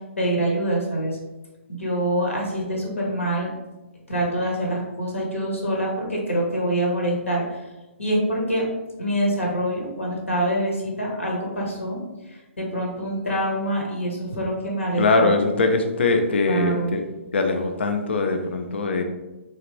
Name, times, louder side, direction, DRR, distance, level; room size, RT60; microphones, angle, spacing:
voice 1, 0.2-1.2 1.7-3.5 4.1-7.7 8.0-8.7 9.0-12.0 12.3-15.4 16.4-17.0, right 1 dB, 75° left, -2 dB, 1.4 m, -25 dB
voice 2, 15.0-17.0 17.3-19.0, left 3 dB, 60° left, 5 dB, 0.5 m, -22 dB
3.7 x 3.3 x 3.0 m, 1.0 s
figure-of-eight pair, 130°, 7 cm